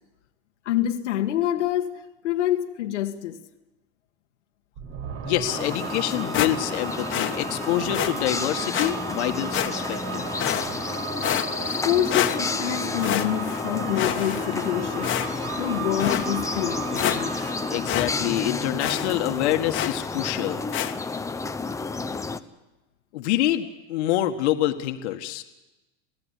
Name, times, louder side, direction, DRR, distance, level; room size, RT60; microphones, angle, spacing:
voice 1, 0.7-3.4 11.8-15.2 15.6-17.3, left 12 dB, 90° left, 1.9 m, -26 dB
sound 1, 4.8-19.1, right 7 dB, 45° right, 5.1 m, -36 dB
voice 2, 5.2-10.3 17.7-20.6 23.1-25.4, left 13 dB, 70° left, 1.9 m, -26 dB
sound 2, 5.5-22.4, left 4 dB, 10° left, 0.9 m, -31 dB
sound 3, 6.3-6.8 7.1-7.3 7.9-8.1 8.7-8.9 9.5-10.0 10.4-10.9 11.2-11.8 12.1-12.7 13.0-13.6 14.0-14.7 15.0-15.5 16.0-16.3 16.7-16.8 16.9-17.5 17.9-18.1 18.4-18.5 18.8-19.1 19.7-20.0 20.7-20.9, left 11 dB, 35° left, 1.7 m, -27 dB
27.0 x 17.0 x 8.5 m
supercardioid pair, 120°, 35 cm